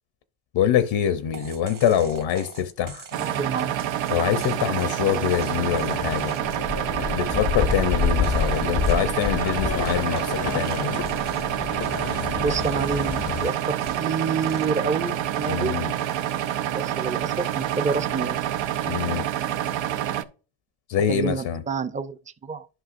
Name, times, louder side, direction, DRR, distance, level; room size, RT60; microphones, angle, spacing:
voice 1, 0.5-3.1 4.1-6.3 7.0-11.0 15.5-15.9 18.9-19.3 20.9-21.6, left 9 dB, 85° left, 0.8 m, -24 dB
sound 1, 1.3-11.6 11.8-12.3 12.6-15.6 16.0-16.4, right 5 dB, 45° right, 1.4 m, -43 dB
sound 2, 3.1-20.2, right 11 dB, 80° right, 0.7 m, -27 dB
voice 2, 3.2-3.8 12.3-15.7 16.7-18.4 21.1-22.7, right 5 dB, 15° right, 0.5 m, -28 dB
sound 3, 5.3-13.5, left 6 dB, 35° left, 0.5 m, -29 dB
11.5 x 5.6 x 2.5 m
cardioid pair, 80°, 45 cm